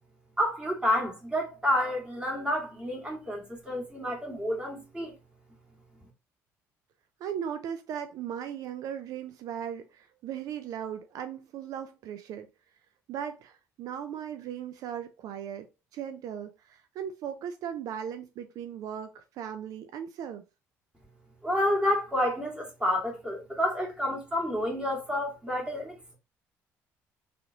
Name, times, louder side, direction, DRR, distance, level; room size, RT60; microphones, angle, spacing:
voice 1, 0.4-5.1 21.4-26.1, left 1 dB, 15° right, 2.2 m, -29 dB
voice 2, 7.2-12.5 13.1-15.7 15.9-20.4, right 9 dB, 70° right, 0.5 m, -37 dB
3.8 x 3.3 x 2.8 m
supercardioid pair, 80°, 6 cm